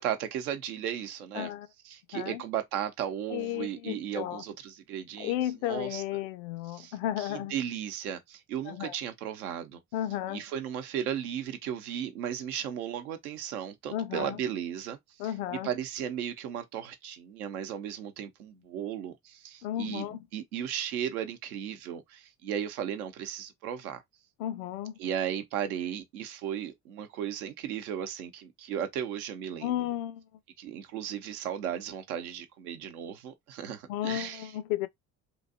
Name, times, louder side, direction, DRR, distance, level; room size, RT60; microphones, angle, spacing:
voice 1, 0.0-1.5 1.8-6.0 6.7-9.8 10.3-24.0 25.0-29.8 30.6-34.5, right 9 dB, 75° right, 0.8 m, -35 dB
voice 2, 1.4-1.7 2.1-2.4 3.3-4.4 5.2-7.5 8.7-8.9 9.9-10.4 13.9-14.4 15.2-15.7 19.6-20.2 24.4-24.9 29.6-30.2 33.9-34.9, left 12 dB, 65° left, 0.5 m, -33 dB
3.1 x 2.6 x 2.6 m
figure-of-eight pair, 55°, 45 cm